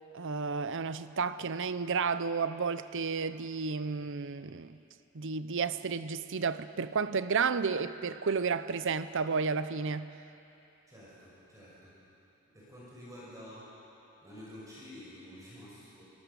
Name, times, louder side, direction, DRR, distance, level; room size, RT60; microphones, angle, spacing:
voice 1, 0.1-4.8 5.1-10.1, right 5 dB, 60° right, 13 dB, 0.7 m, -32 dB
voice 2, 10.9-11.9 12.5-13.7 14.2-16.0, equal, 15° right, -7 dB, 6.2 m, -49 dB
27.0 x 17.5 x 7.1 m, 2.9 s
head